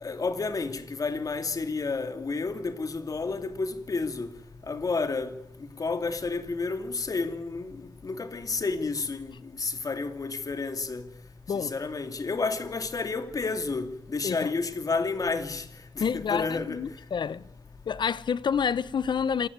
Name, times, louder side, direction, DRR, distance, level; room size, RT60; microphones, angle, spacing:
voice 1, 0.0-4.3 4.7-5.4 5.8-7.7 8.0-9.3 9.6-11.0 11.5-15.6 15.9-16.8, left 4 dB, 50° left, 2.7 m, -30 dB
voice 2, 16.0-17.5 17.9-19.5, left 7 dB, 75° left, 0.9 m, -28 dB
27.0 x 17.0 x 9.6 m
wide cardioid pair, 110°, 8 cm